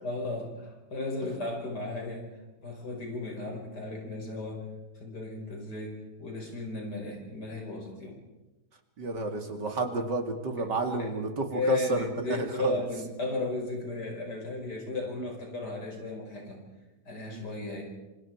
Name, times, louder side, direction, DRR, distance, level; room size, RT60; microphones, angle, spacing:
voice 1, 0.0-2.3 2.6-4.7 4.9-8.2 10.6-10.7 11.0-11.1 11.5-16.6 17.1-17.8, left 2 dB, 70° left, 1 dB, 5.9 m, -35 dB
voice 2, 9.0-12.8 17.3-17.5, right 2 dB, 85° right, 4 dB, 3.0 m, -31 dB
26.5 x 26.0 x 4.7 m, 1.1 s
omnidirectional pair, 1.8 m